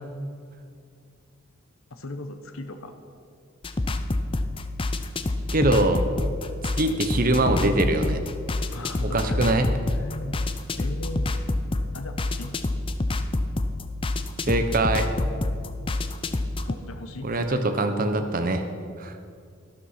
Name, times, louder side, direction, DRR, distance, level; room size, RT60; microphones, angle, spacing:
voice 1, 1.9-2.9 8.7-9.7 10.0-10.4 10.7-11.3 11.9-12.5 16.7-17.6, left 2 dB, 85° left, 7 dB, 1.0 m, -38 dB
sound 1, 3.6-16.7, left 2 dB, 25° left, 0.5 m, -28 dB
voice 2, 5.5-6.0 6.8-8.2 9.1-9.7 14.4-15.3 17.2-18.6 19.0-19.2, right 2 dB, 40° right, 7 dB, 1.0 m, -23 dB
12.5 x 11.5 x 5.8 m, 2.3 s
head